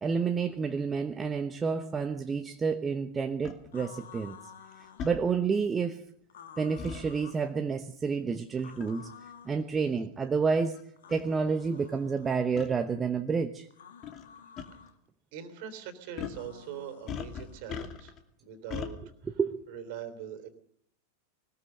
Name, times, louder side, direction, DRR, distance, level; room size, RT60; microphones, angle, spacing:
voice 1, 0.0-4.4 5.0-6.0 6.6-9.1 9.4-10.8 11.1-13.7 19.4-19.6, right 5 dB, 15° right, 0.9 m, -29 dB
sound 1, 3.4-3.6 5.0-5.2 6.8-7.0 8.8-9.0 9.8-9.9 10.7-10.8 11.1-11.2 12.6-12.7 14.0-14.3 14.6-14.7 16.2-16.4 17.1-18.2 18.7-18.9, left 7 dB, 30° left, 2.5 m, -38 dB
sound 2, 3.7-5.1 6.3-7.5 8.6-9.6 11.0-12.4 13.7-14.9 16.3-17.6, left 7 dB, 60° left, 2.0 m, -51 dB
voice 2, 15.3-18.1 18.4-19.0 19.7-20.5, right 9 dB, 45° right, 3.2 m, -42 dB
20.5 x 20.0 x 6.7 m
figure-of-eight pair, 90°, 0 cm